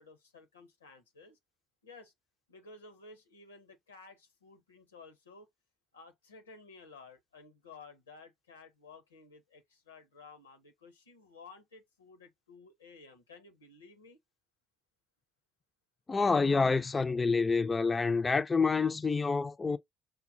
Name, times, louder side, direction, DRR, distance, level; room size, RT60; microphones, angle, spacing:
voice 1, 0.0-1.4 1.8-2.1 2.5-5.5 5.9-14.2, left 4 dB, 85° left, 0.7 m, -54 dB
voice 2, 16.1-19.8, left 4 dB, 25° left, 0.4 m, -27 dB
6.1 x 2.2 x 2.6 m
figure-of-eight pair, 50°, 0 cm